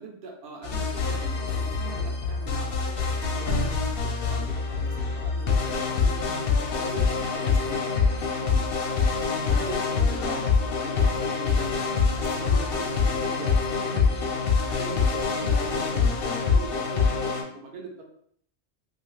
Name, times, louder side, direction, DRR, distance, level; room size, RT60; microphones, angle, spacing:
voice 1, 0.0-3.0 3.2-6.3 6.6-9.0 9.3-11.8 12.2-14.3 14.6-18.0, right 2 dB, 55° right, 1 dB, 0.8 m, -42 dB
sound 1, 0.6-17.4, left 5 dB, 60° left, 0.6 m, -25 dB
2.7 x 2.7 x 3.1 m, 0.65 s
omnidirectional pair, 1.4 m